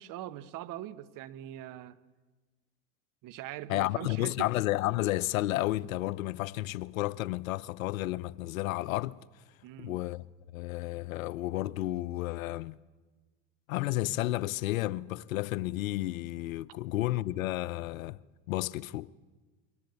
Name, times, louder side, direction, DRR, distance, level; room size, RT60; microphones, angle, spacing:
voice 1, 0.0-2.0 3.2-4.5 9.6-10.0, right 13 dB, 50° right, 1.3 m, -42 dB
voice 2, 3.7-9.2 9.8-10.2 10.5-12.8 13.7-18.2 18.5-19.1, left 16 dB, 75° left, 0.7 m, -32 dB
22.5 x 18.0 x 8.3 m
hypercardioid pair, 80°, 41 cm